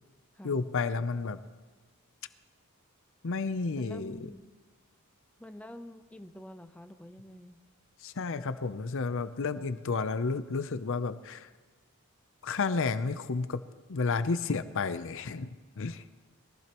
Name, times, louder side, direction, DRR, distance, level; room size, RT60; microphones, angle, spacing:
voice 1, 0.4-1.4 3.2-4.3 8.0-11.5 12.4-13.6 13.9-16.0, left 4 dB, 65° left, 12 dB, 0.6 m, -31 dB
voice 2, 3.8-4.5 5.4-7.6, left 1 dB, 5° left, 7 dB, 0.5 m, -47 dB
22.0 x 15.0 x 3.0 m, 1.4 s
head